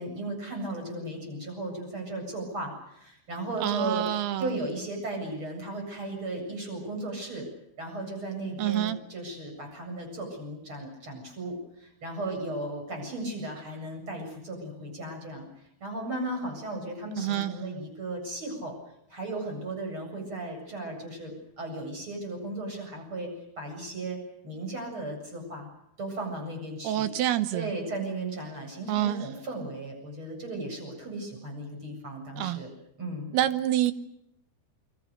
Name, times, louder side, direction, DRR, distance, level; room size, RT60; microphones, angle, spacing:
voice 1, 0.0-7.4 7.8-15.4 15.8-18.7 19.1-24.2 24.4-25.7 26.0-27.1 27.5-32.7 33.0-33.3, right 2 dB, 30° right, 8.4 m, -36 dB
voice 2, 3.6-4.6 8.6-9.0 17.2-17.5 26.8-27.7 28.9-29.2 32.4-32.6 33.3-33.9, right 12 dB, 90° right, 3.2 m, -27 dB
29.0 x 23.5 x 6.7 m
omnidirectional pair, 4.4 m